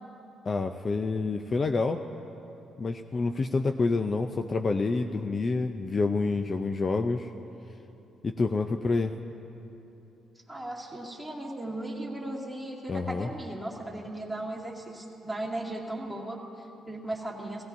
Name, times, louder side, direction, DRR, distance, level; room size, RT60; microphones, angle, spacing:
voice 1, 0.4-2.0 2.8-7.3 8.2-9.1 12.9-13.3, left 3 dB, 35° left, 6 dB, 0.4 m, -28 dB
voice 2, 10.5-17.6, right 1 dB, 5° right, -4 dB, 2.1 m, -37 dB
17.0 x 16.5 x 2.7 m, 3.0 s
cardioid pair, 90°, 0 cm